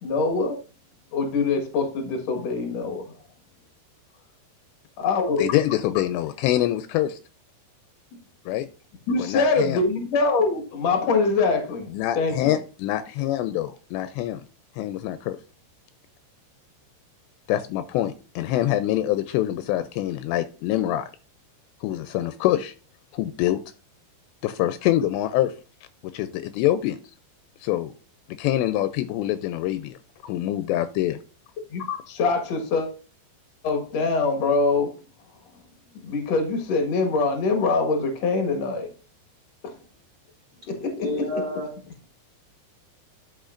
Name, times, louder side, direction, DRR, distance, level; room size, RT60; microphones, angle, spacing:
voice 1, 0.0-0.6 1.1-3.1 5.0-5.5 9.1-12.6 31.7-32.9 33.6-34.9 36.0-38.9 39.6-39.7 40.7-41.4, left 4 dB, 60° left, 1.9 m, -24 dB
voice 2, 5.4-7.2 8.5-8.7 9.2-9.8 11.9-14.4 14.7-15.4 17.5-21.1 21.8-22.7 23.1-23.6 24.4-25.5 26.0-27.1 27.6-27.9 28.3-30.0 30.3-31.2, left 13 dB, 85° left, 2.7 m, -25 dB
voice 3, 41.0-41.7, left 1 dB, 25° right, 2.8 m, -29 dB
11.5 x 6.1 x 2.5 m
omnidirectional pair, 5.1 m